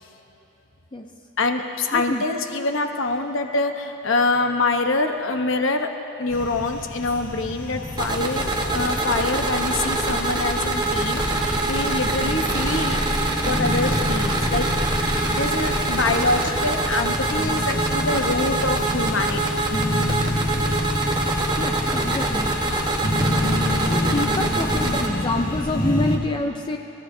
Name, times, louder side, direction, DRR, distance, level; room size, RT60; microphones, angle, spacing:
voice 1, 1.4-5.9 6.2-13.0 13.4-19.6, left 3 dB, 65° left, 5 dB, 0.9 m, -25 dB
voice 2, 1.9-2.2 21.6-22.5 23.9-26.8, left 2 dB, 25° left, 3 dB, 0.5 m, -27 dB
sound 1, 6.3-26.2, left 1 dB, 40° left, 1.6 m, -28 dB
sound 2, 8.0-25.1, right 2 dB, 20° right, 1.1 m, -24 dB
28.0 x 15.0 x 2.7 m, 2.8 s
head